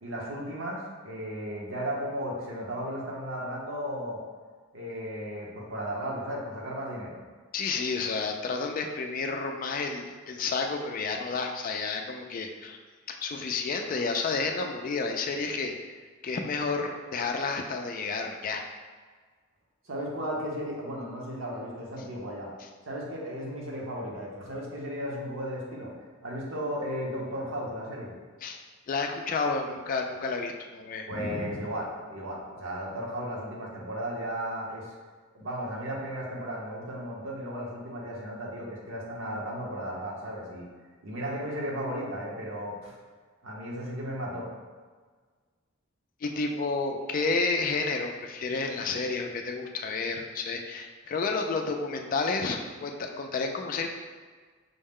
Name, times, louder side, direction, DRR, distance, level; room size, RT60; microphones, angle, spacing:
voice 1, 0.0-4.2 4.7-7.2 19.9-22.5 22.9-25.9 26.2-28.1 31.1-34.9 35.3-40.7 41.0-43.0 43.4-44.5, equal, 70° right, -3 dB, 0.9 m, -35 dB
voice 2, 7.5-12.8 13.1-15.8 16.2-18.6 22.6-22.7 28.4-28.6 28.9-31.7 46.2-53.9, left 4 dB, 40° left, 4 dB, 0.3 m, -31 dB
5.4 x 2.1 x 3.6 m, 1.5 s
head